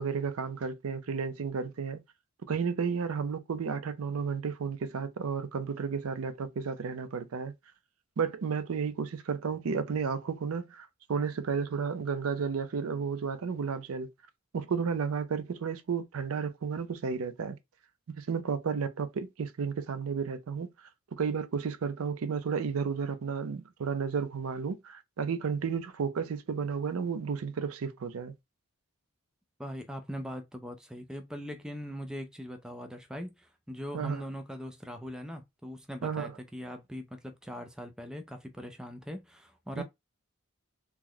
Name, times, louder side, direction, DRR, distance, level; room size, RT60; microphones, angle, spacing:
voice 1, 0.0-2.0 2.5-7.5 8.2-14.1 14.5-17.6 18.2-20.7 21.2-28.3 33.9-34.2 36.0-36.3 39.8-39.9, right 6 dB, 85° right, 0.5 m, -32 dB
voice 2, 29.6-39.8, equal, 5° right, 0.3 m, -41 dB
3.0 x 2.0 x 3.7 m
head